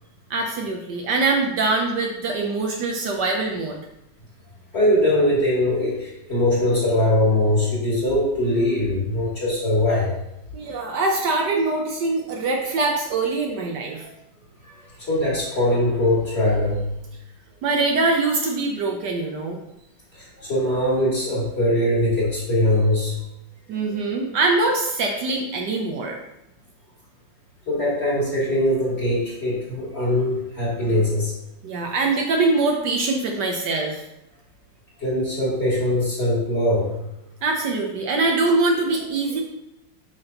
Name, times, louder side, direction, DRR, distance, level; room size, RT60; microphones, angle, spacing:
voice 1, 0.3-3.8 10.5-14.1 17.6-19.6 23.7-26.2 31.6-34.0 37.4-39.4, right 3 dB, 65° right, 1 dB, 1.3 m, -23 dB
voice 2, 4.7-10.1 14.6-16.8 20.1-23.1 27.7-31.3 35.0-37.0, left 1 dB, 30° left, -6 dB, 2.9 m, -21 dB
7.6 x 6.1 x 2.9 m, 0.86 s
omnidirectional pair, 2.1 m